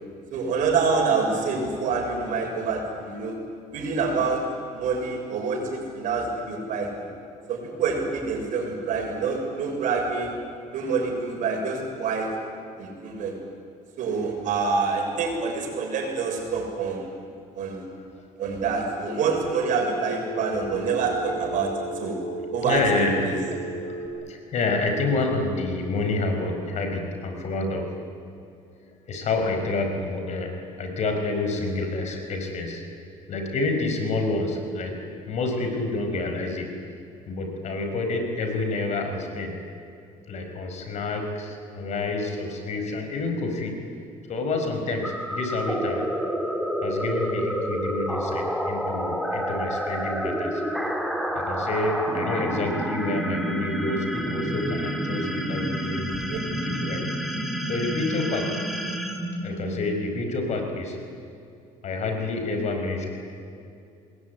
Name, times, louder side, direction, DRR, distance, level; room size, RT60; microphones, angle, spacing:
voice 1, 0.3-3.4 3.7-4.4 4.7-7.1 7.5-10.3 10.7-12.3 12.8-13.3 14.0-17.1 17.5-17.8 18.4-22.2 22.5-23.4 56.3-56.4, right 4 dB, 65° right, 2 dB, 6.9 m, -26 dB
Telephone, 19.1-24.1, right 1 dB, 80° left, 5.0 m, -35 dB
voice 2, 22.6-23.2 23.5-27.9 29.1-32.8 33.3-35.0 35.3-36.7 37.3-39.6 40.3-43.8 44.3-46.1 46.8-50.6 51.3-56.1 56.5-57.3 57.7-58.5 59.4-61.0 61.8-63.1, left 2 dB, 55° left, 4 dB, 5.4 m, -28 dB
sound 1, 45.0-60.2, equal, ahead, 3.0 m, -29 dB
27.5 x 20.5 x 9.6 m, 2.6 s
cardioid pair, 125°, 14 cm